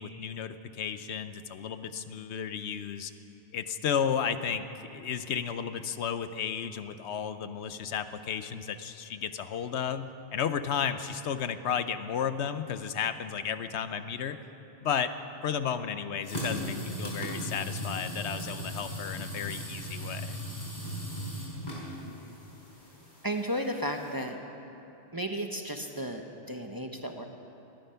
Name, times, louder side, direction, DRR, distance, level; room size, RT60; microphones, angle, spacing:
voice 1, 0.0-3.1 3.5-14.4 14.8-15.1 15.4-20.4, left 7 dB, 75° left, 11 dB, 1.0 m, -33 dB
sound 1, 16.2-24.1, equal, 40° left, 4.3 m, -38 dB
voice 2, 23.2-24.4 25.1-27.2, equal, 20° right, 4 dB, 0.8 m, -34 dB
19.5 x 13.0 x 5.7 m, 2.8 s
omnidirectional pair, 1.2 m